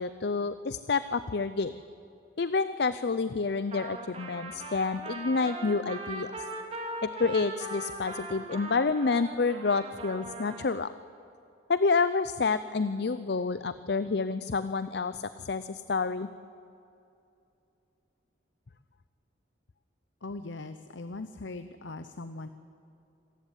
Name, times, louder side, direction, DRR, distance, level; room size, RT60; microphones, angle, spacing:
voice 1, 0.0-1.7 2.4-6.3 7.0-10.9 11.7-16.3, left 4 dB, 55° left, 14 dB, 0.5 m, -29 dB
Trumpet, 3.7-10.8, right 2 dB, 30° right, 2.7 m, -40 dB
voice 2, 20.2-22.5, left 2 dB, 80° left, 10 dB, 0.9 m, -40 dB
26.0 x 15.0 x 9.8 m, 2.8 s
head